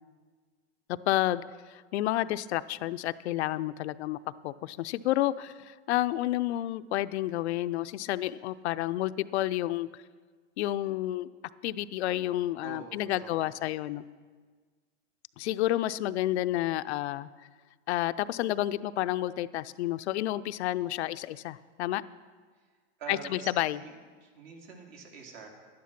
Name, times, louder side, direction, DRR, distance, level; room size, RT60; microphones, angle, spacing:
voice 1, 0.9-4.2 4.4-10.0 10.6-11.3 11.6-14.0 15.4-17.3 17.9-22.0 23.1-23.8, left 14 dB, 65° left, 13 dB, 0.5 m, -30 dB
voice 2, 12.6-13.6 23.0-23.5 23.8-23.9 24.2-25.5, right 5 dB, 55° right, 2 dB, 2.5 m, -45 dB
11.5 x 10.5 x 5.8 m, 1.5 s
supercardioid pair, 140°, 35 cm